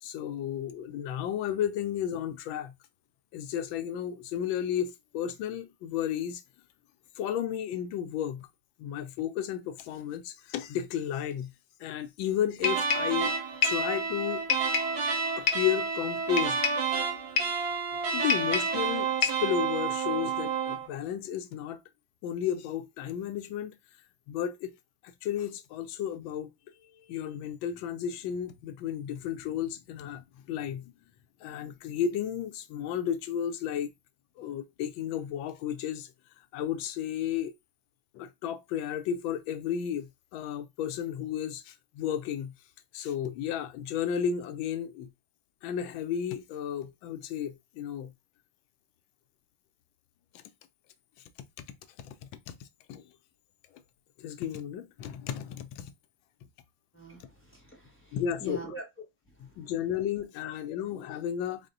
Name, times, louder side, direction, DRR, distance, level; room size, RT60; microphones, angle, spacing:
voice 1, 0.0-2.7 3.3-6.4 7.2-8.5 8.8-11.5 11.8-13.3 13.6-14.5 15.4-16.6 18.1-21.8 22.2-23.8 24.3-24.7 25.0-26.5 27.0-30.9 31.4-33.9 34.4-36.1 36.5-37.5 38.1-42.5 42.9-45.1 45.6-48.1 51.6-51.7 52.0-53.0 54.2-55.9 58.1-58.7 59.4-61.6, left 9 dB, 80° left, 1.3 m, -33 dB
sound 1, 12.6-13.2 13.6-13.9 14.5-15.0 15.5-15.7 16.4-16.9 17.4-17.6 18.3-18.8 19.2-19.5, left 7 dB, 65° left, 0.8 m, -29 dB
sound 2, 12.6-20.9, right 5 dB, 60° right, 1.4 m, -30 dB
voice 2, 56.9-58.8 59.6-59.7, right 1 dB, 20° left, 0.3 m, -44 dB
4.2 x 2.1 x 3.8 m
omnidirectional pair, 2.1 m